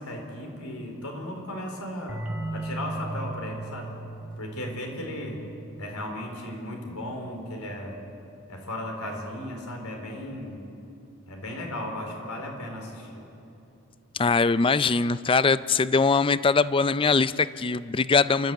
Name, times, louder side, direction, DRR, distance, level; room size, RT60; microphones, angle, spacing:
voice 1, 0.0-2.3 2.5-3.9 4.4-5.4 5.8-8.0 8.5-10.7 11.3-13.2, left 1 dB, 85° left, 2 dB, 4.0 m, -36 dB
sound 1, 2.1-7.5, right 2 dB, 5° right, 2.2 m, -38 dB
voice 2, 14.1-18.5, left 4 dB, 25° left, 16 dB, 0.4 m, -22 dB
28.5 x 13.0 x 8.9 m, 2.8 s
head